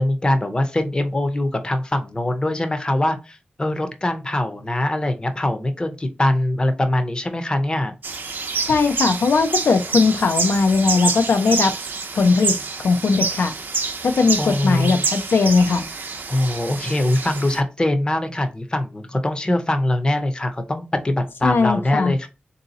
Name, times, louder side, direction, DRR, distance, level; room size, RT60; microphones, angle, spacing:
voice 1, 0.0-7.9 14.4-15.1 16.3-22.3, left 1 dB, 25° left, 0.6 m, -22 dB
sound 1, 8.0-17.6, right 4 dB, 70° right, 0.6 m, -27 dB
voice 2, 8.6-11.7 12.1-13.5 14.0-15.8 21.4-22.1, left 4 dB, 85° left, 0.5 m, -19 dB
3.7 x 2.7 x 3.9 m
wide cardioid pair, 125°, 3 cm